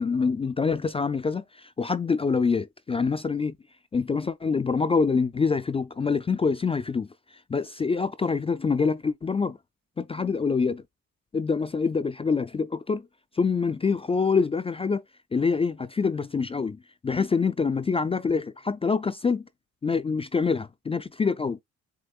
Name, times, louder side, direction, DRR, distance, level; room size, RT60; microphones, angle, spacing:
voice 1, 0.0-3.6 3.9-7.1 7.5-9.6 10.0-10.8 11.3-13.1 13.4-15.0 15.3-19.5 19.8-21.6, left 5 dB, 20° left, 0.3 m, -25 dB
7.7 x 2.8 x 2.3 m
cardioid pair, 90°, 30 cm